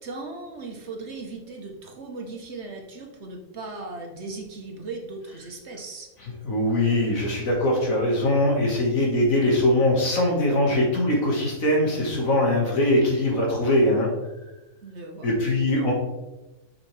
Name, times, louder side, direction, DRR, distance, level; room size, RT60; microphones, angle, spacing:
voice 1, 0.0-6.1 9.0-9.2 14.8-15.5, right 3 dB, 55° right, 2 dB, 1.2 m, -38 dB
voice 2, 6.4-14.1 15.2-15.9, left 1 dB, 70° left, -2 dB, 2.2 m, -22 dB
7.1 x 6.2 x 3.3 m, 1.1 s
omnidirectional pair, 1.5 m